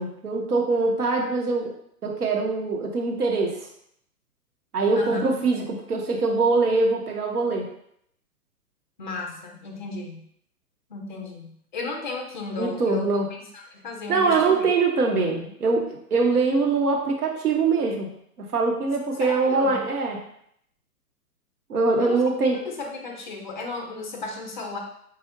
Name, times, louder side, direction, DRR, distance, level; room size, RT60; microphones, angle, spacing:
voice 1, 0.0-1.8 2.0-3.7 4.7-7.7 12.6-13.3 14.1-18.1 18.4-20.2 21.7-22.6, right 3 dB, 70° right, 1 dB, 0.9 m, -23 dB
voice 2, 4.9-5.2 9.0-10.2 10.9-14.6 19.2-19.8 22.0-22.2 22.4-24.8, left 3 dB, 35° left, 2 dB, 0.4 m, -35 dB
4.1 x 2.4 x 2.5 m, 0.71 s
figure-of-eight pair, 120°, 47 cm